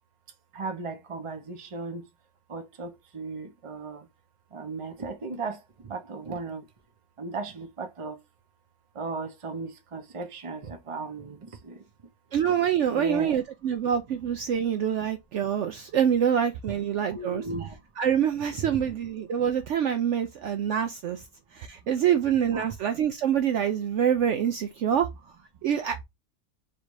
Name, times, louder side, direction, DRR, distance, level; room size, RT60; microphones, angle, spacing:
voice 1, 0.5-2.0 2.5-4.1 4.5-6.6 7.2-8.2 8.9-11.8 12.9-13.4 17.0-17.7 18.6-18.7 22.5-22.7, right 3 dB, 30° right, 0.6 m, -36 dB
voice 2, 12.3-17.4 18.0-21.2 21.5-25.1 25.6-26.0, right 9 dB, 65° right, 0.8 m, -26 dB
3.3 x 2.6 x 4.6 m
omnidirectional pair, 1.5 m